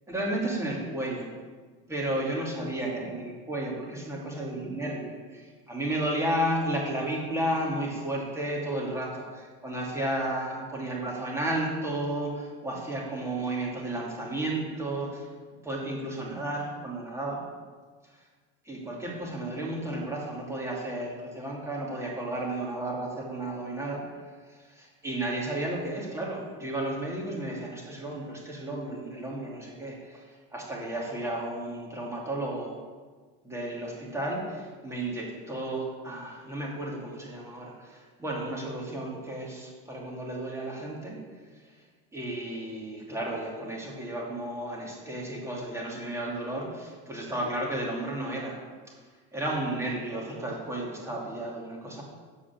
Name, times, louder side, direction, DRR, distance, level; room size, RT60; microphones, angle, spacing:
voice 1, 0.1-1.3 1.9-15.3 15.6-17.4 18.6-24.2 24.5-32.8 33.4-41.2 41.6-41.7 42.1-48.6 49.3-52.0, right 1 dB, 10° right, -3 dB, 2.7 m, -33 dB
14.5 x 4.9 x 8.7 m, 1.5 s
cardioid pair, 160°, 33 cm